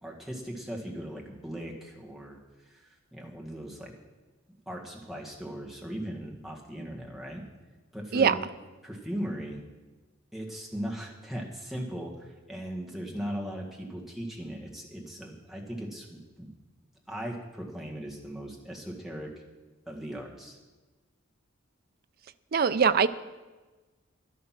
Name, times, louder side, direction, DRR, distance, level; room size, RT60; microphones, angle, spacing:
voice 1, 0.0-3.9 4.7-7.4 7.9-8.4 8.8-9.6 10.3-16.5 17.1-19.3 19.9-20.6, equal, ahead, -2 dB, 1.8 m, -38 dB
voice 2, 22.5-23.1, right 6 dB, 50° right, 13 dB, 0.5 m, -22 dB
12.0 x 11.0 x 5.9 m, 1.3 s
head